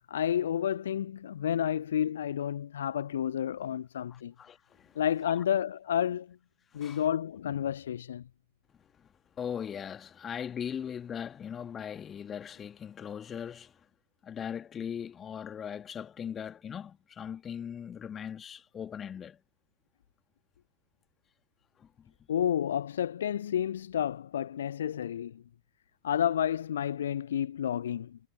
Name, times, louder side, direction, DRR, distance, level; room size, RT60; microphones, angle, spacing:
voice 1, 0.1-4.3 5.0-6.4 6.7-8.2 22.3-25.4 26.0-28.2, left 9 dB, 65° left, 0.4 m, -30 dB
voice 2, 4.1-5.0 6.7-7.0 9.0-9.1 9.4-13.8 14.2-19.4 21.8-22.1, left 8 dB, 25° left, 2.1 m, -39 dB
figure-of-eight pair, 90°, 0 cm